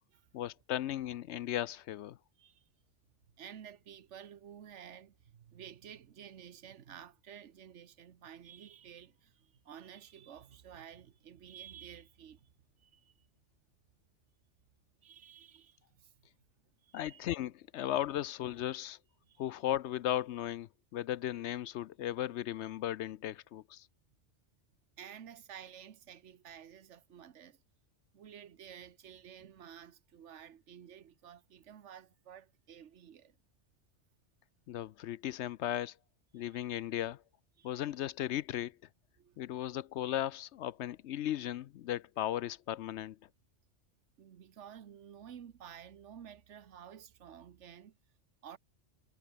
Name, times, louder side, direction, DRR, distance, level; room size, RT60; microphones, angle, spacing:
voice 1, 0.3-2.2 16.9-19.0 19.4-23.9 34.7-36.0 36.3-37.2 37.6-38.8 39.4-43.2, left 12 dB, 70° left, 0.8 m, -36 dB
voice 2, 2.4-2.7 3.4-12.5 12.8-13.3 15.0-16.1 16.8-17.2 19.2-19.5 25.0-27.6 28.1-33.4 36.3-36.7 37.6-37.9 39.2-39.4 44.2-48.0 48.4-48.6, right 9 dB, 70° right, 1.3 m, -52 dB
omnidirectional pair, 1.2 m